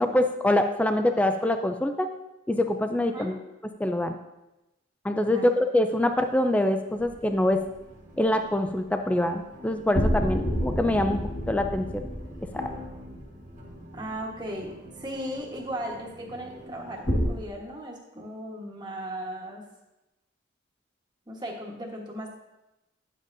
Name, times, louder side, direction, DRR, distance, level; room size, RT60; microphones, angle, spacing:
voice 1, 0.0-2.1 2.5-3.4 3.8-4.2 5.0-7.6 8.2-11.2 11.5-12.0 12.5-12.7, left 1 dB, 5° left, 6 dB, 0.3 m, -24 dB
sound 1, 5.8-17.4, left 1 dB, 40° right, 1.3 m, -47 dB
sound 2, 7.0-7.9 9.9-14.3 17.0-17.3, equal, 40° left, 1.6 m, -30 dB
voice 2, 13.9-19.6 21.3-22.3, right 1 dB, 20° right, -1 dB, 1.2 m, -37 dB
10.5 x 7.4 x 2.6 m, 0.97 s
head